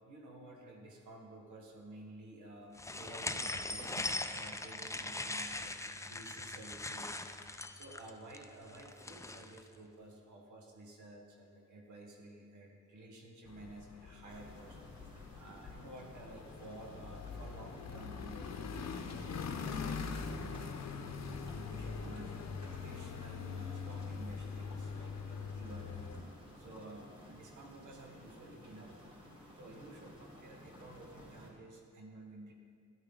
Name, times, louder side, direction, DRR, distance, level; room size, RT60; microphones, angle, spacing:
voice 1, 0.0-14.8 15.4-20.8 21.2-26.1 26.6-29.0 29.6-32.5, right 1 dB, 90° right, 1 dB, 1.6 m, -52 dB
sound 1, 2.8-9.6, left 2 dB, 10° left, 0.5 m, -40 dB
sound 2, 13.5-26.2, left 5 dB, 65° left, 0.8 m, -43 dB
sound 3, 14.3-31.5, equal, 15° right, 2.9 m, -55 dB
12.5 x 10.5 x 3.9 m, 2.2 s
cardioid pair, 80°, 29 cm